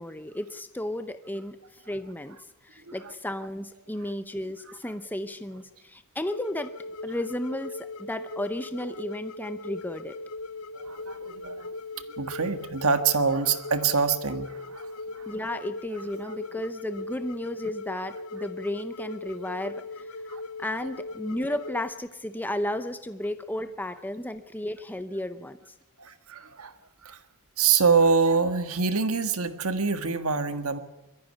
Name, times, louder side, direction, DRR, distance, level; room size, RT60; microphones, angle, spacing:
voice 1, 0.0-2.4 2.6-6.7 7.0-10.2 15.3-20.1 20.6-25.7, left 1 dB, 10° left, 10 dB, 0.7 m, -33 dB
sound 1, 6.3-21.9, left 2 dB, 65° left, 0.6 m, -39 dB
voice 2, 10.7-11.8 12.2-15.3 16.2-16.3 20.3-20.4 26.0-26.7 27.0-27.2 27.6-30.8, right 5 dB, 70° right, 9 dB, 1.6 m, -25 dB
23.0 x 14.0 x 9.7 m, 1.0 s
head